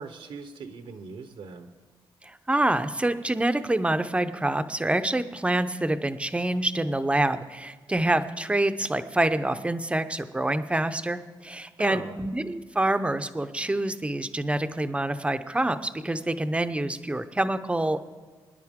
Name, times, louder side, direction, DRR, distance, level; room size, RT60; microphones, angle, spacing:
voice 1, 0.0-1.7 11.8-12.1, right 5 dB, 75° right, 7 dB, 1.0 m, -39 dB
voice 2, 2.2-18.0, right 1 dB, 10° right, 11 dB, 0.7 m, -26 dB
23.0 x 10.0 x 3.7 m, 1.4 s
cardioid pair, 80°, 9 cm